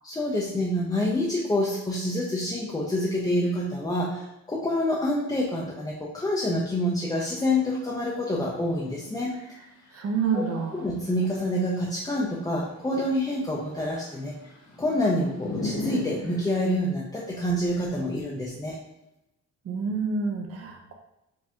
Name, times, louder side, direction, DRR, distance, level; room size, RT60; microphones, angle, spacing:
voice 1, 0.0-9.3 10.3-10.4 10.8-14.3 14.8-18.8, left 1 dB, 10° left, -4 dB, 0.5 m, -27 dB
sound 1, 6.5-6.6 6.9-8.7 9.2-10.8 11.5-16.8, left 1 dB, 55° left, 1.3 m, -38 dB
voice 2, 9.9-10.9 19.6-20.9, right 5 dB, 50° right, 3 dB, 0.7 m, -28 dB
4.9 x 2.7 x 3.5 m, 0.89 s
cardioid pair, 150°, 31 cm